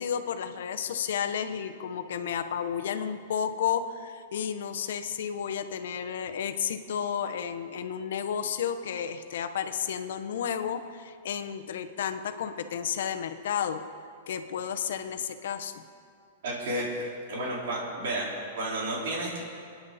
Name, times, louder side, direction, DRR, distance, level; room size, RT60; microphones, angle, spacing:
voice 1, 0.0-13.8 14.3-15.8, left 8 dB, 65° left, 9 dB, 1.0 m, -32 dB
voice 2, 16.4-16.9 17.3-18.3 18.5-19.4, right 1 dB, 60° right, -4 dB, 4.5 m, -31 dB
25.5 x 10.5 x 4.2 m, 2.3 s
supercardioid pair, 175°, 0 cm